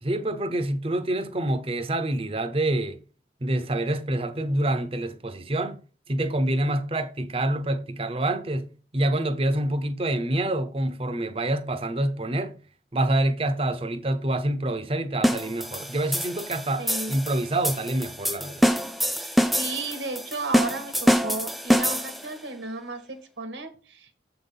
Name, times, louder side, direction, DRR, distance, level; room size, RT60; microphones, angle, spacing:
voice 1, 0.0-3.0 3.4-5.8 6.1-12.6 12.9-18.6, right 1 dB, 30° right, 0.7 m, -27 dB
sound 1, 15.2-22.3, equal, ahead, 0.3 m, -25 dB
voice 2, 16.8-17.2 19.2-24.2, right 3 dB, 80° right, 1.6 m, -34 dB
7.5 x 3.9 x 5.4 m
head